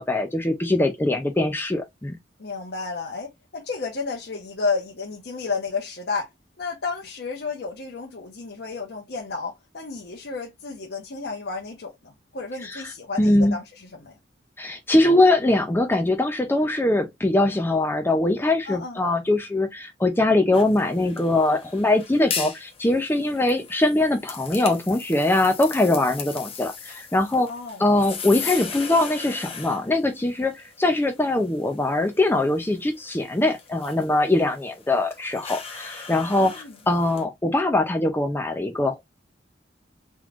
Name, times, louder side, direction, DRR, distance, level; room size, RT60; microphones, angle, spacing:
voice 1, 0.0-2.2 12.6-12.8 13.2-13.6 14.6-27.5 27.8-36.5 36.9-39.0, left 2 dB, 10° left, 0.5 m, -22 dB
voice 2, 2.4-3.3 3.5-6.3 6.6-14.1 18.7-19.0 27.5-27.8 36.4-36.7, left 4 dB, 60° left, 0.9 m, -32 dB
sound 1, 20.5-37.2, left 6 dB, 30° left, 1.0 m, -38 dB
3.9 x 3.0 x 2.4 m
head